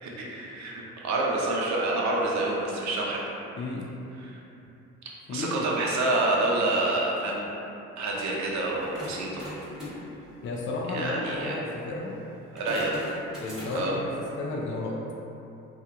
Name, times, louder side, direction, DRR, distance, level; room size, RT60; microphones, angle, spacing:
voice 1, 0.0-3.2 4.2-4.4 5.3-7.5 8.0-9.5 10.9-11.6 12.5-13.0 13.7-13.9, right 2 dB, 65° right, -3 dB, 0.6 m, -28 dB
voice 2, 3.6-3.9 5.3-5.7 10.4-12.2 13.4-14.1 14.4-14.9, left 2 dB, 40° left, -3 dB, 0.4 m, -32 dB
sound 1, 8.6-14.1, left 1 dB, ahead, 1.0 m, -42 dB
2.7 x 2.3 x 2.3 m, 2.9 s
cardioid pair, 90°, 30 cm